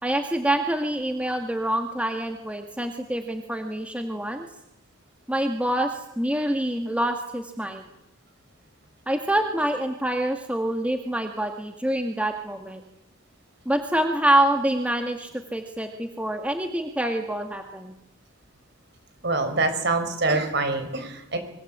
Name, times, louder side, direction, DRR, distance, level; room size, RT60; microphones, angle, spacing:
voice 1, 0.0-4.5 5.3-7.8 9.1-12.8 13.7-17.9, right 1 dB, 5° right, 5 dB, 1.9 m, -26 dB
voice 2, 19.2-21.4, right 3 dB, 50° right, 8 dB, 5.3 m, -25 dB
24.5 x 24.0 x 8.8 m, 0.85 s
head